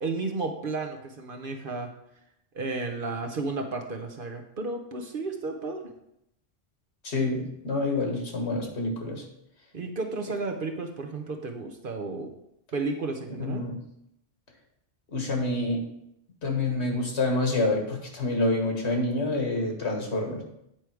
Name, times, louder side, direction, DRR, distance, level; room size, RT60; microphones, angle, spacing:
voice 1, 0.0-1.9 2.5-5.8 9.7-12.3 12.7-13.6, right 3 dB, 50° right, 4 dB, 0.8 m, -32 dB
voice 2, 7.0-9.2 13.4-13.8 15.1-15.8 16.4-20.4, left 2 dB, 65° left, 2 dB, 1.7 m, -27 dB
9.0 x 4.8 x 4.5 m, 0.79 s
omnidirectional pair, 1.2 m